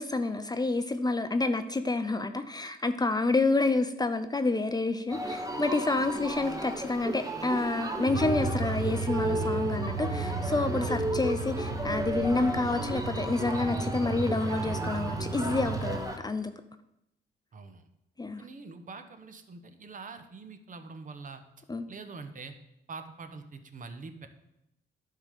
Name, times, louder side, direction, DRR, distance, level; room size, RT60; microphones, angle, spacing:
voice 1, 0.0-16.5 18.2-18.4 21.7-21.8, left 3 dB, 20° left, 9 dB, 0.5 m, -29 dB
sound 1, 5.1-16.2, right 1 dB, 15° right, 1.3 m, -34 dB
sound 2, 8.1-16.0, right 3 dB, 70° right, 1.3 m, -34 dB
voice 2, 17.5-17.8 18.4-21.4 21.9-22.5 22.9-24.3, right 4 dB, 40° right, 8 dB, 1.0 m, -44 dB
10.5 x 3.8 x 6.6 m, 0.85 s
cardioid pair, 90°, 20 cm